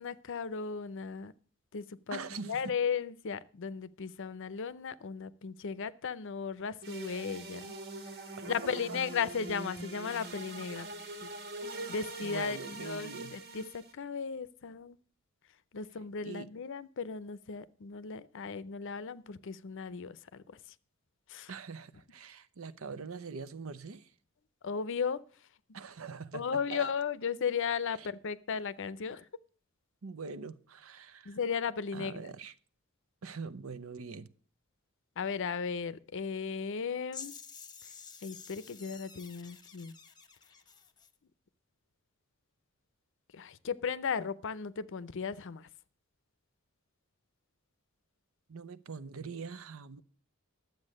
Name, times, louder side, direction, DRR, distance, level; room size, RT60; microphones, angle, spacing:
voice 1, 0.0-1.3 1.7-7.8 8.5-11.0 11.2-11.3 11.6-15.0 15.7-20.6 21.3-21.5 24.6-25.2 26.3-29.2 31.2-32.3 35.2-37.3 38.2-39.9 43.3-45.7, left 6 dB, 60° left, 0.6 m, -36 dB
voice 2, 2.1-2.6 8.4-9.0 10.8-10.9 12.2-13.3 16.2-16.5 21.5-24.1 25.7-26.9 28.0-28.1 30.0-31.4 31.9-32.5 33.2-34.3 48.5-50.0, right 5 dB, 70° right, 0.7 m, -43 dB
sound 1, 6.8-13.9, right 2 dB, 50° right, 1.7 m, -43 dB
sound 2, 37.1-41.1, left 6 dB, 20° left, 0.9 m, -50 dB
11.5 x 7.9 x 6.4 m
head